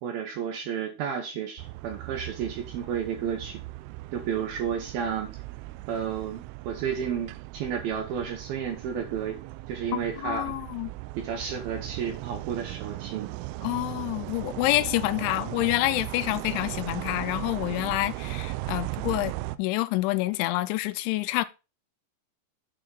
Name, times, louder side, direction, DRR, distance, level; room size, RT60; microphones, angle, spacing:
voice 1, 0.0-3.6 4.1-5.4 5.9-9.4 9.7-10.5 11.2-13.3, right 8 dB, 70° right, 2.4 m, -32 dB
sound 1, 1.6-19.6, right 19 dB, 85° right, 3.0 m, -38 dB
voice 2, 9.9-10.9 13.6-21.5, left 18 dB, 85° left, 2.9 m, -28 dB
8.5 x 4.9 x 5.4 m
omnidirectional pair, 5.4 m